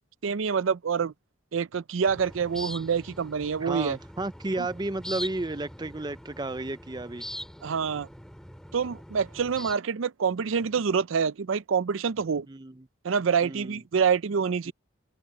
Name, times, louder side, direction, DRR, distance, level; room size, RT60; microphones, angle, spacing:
voice 1, 0.2-1.1 1.5-4.0 4.6-4.7 7.6-8.1 8.7-12.5 13.0-14.7, right 6 dB, 75° right, 0.5 m, -26 dB
sound 1, 2.0-9.8, equal, 5° left, 3.5 m, -42 dB
voice 2, 3.6-7.2 12.5-12.9 13.4-13.8 14.7-14.8, right 2 dB, 20° right, 0.5 m, -33 dB
open air
head